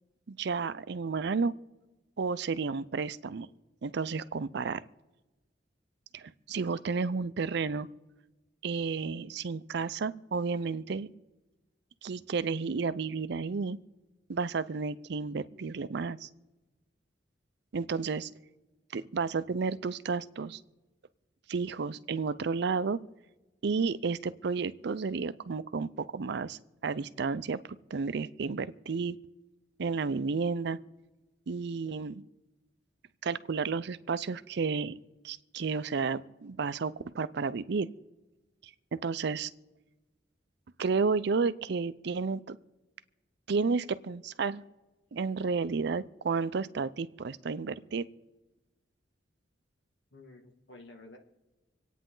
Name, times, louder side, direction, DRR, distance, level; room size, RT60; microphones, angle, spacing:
voice 1, 0.3-1.5 2.2-3.5 3.8-4.8 6.1-7.9 8.6-11.1 12.0-13.8 14.3-16.3 17.7-18.3 18.9-20.6 21.5-23.0 23.6-27.6 27.9-29.2 29.8-30.8 31.5-32.2 33.2-35.0 35.2-37.9 38.9-39.5 40.8-42.6 43.5-44.6 45.1-48.0, right 4 dB, 65° right, 16 dB, 0.5 m, -32 dB
voice 2, 50.1-51.2, left 2 dB, 85° left, 3 dB, 2.1 m, -52 dB
26.5 x 9.2 x 3.8 m, 1.1 s
head